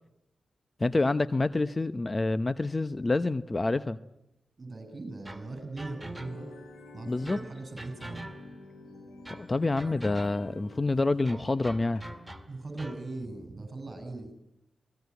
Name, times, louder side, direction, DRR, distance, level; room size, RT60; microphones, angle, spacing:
voice 1, 0.8-4.0 7.1-7.4 9.4-12.0, left 2 dB, 30° left, 13 dB, 0.8 m, -27 dB
voice 2, 4.6-6.5 6.9-8.2 12.5-14.3, right 2 dB, 40° right, 7 dB, 6.7 m, -39 dB
sound 1, 5.2-6.7 7.2-8.7 9.2-10.6 11.2-13.1, right 1 dB, 15° right, 2.1 m, -45 dB
sound 2, 6.0-12.4, left 3 dB, 85° left, 7.4 m, -50 dB
25.5 x 19.0 x 8.3 m, 0.86 s
cardioid pair, 50°, 0 cm